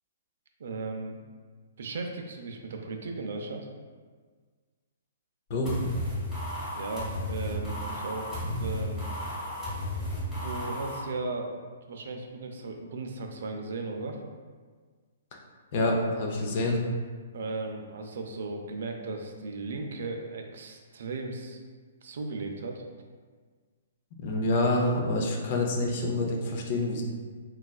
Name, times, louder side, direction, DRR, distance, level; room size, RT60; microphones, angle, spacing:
voice 1, 0.6-1.2 1.8-3.7 6.7-9.2 10.4-11.6 11.9-14.2 17.3-21.6 22.0-22.8, right 3 dB, 70° right, 3 dB, 0.4 m, -36 dB
sound 1, 5.6-11.0, left 1 dB, 5° left, 1.1 m, -33 dB
voice 2, 15.7-16.8 24.2-27.0, left 2 dB, 40° left, 0 dB, 0.5 m, -27 dB
4.0 x 2.3 x 2.3 m, 1.5 s
hypercardioid pair, 160°, 0 cm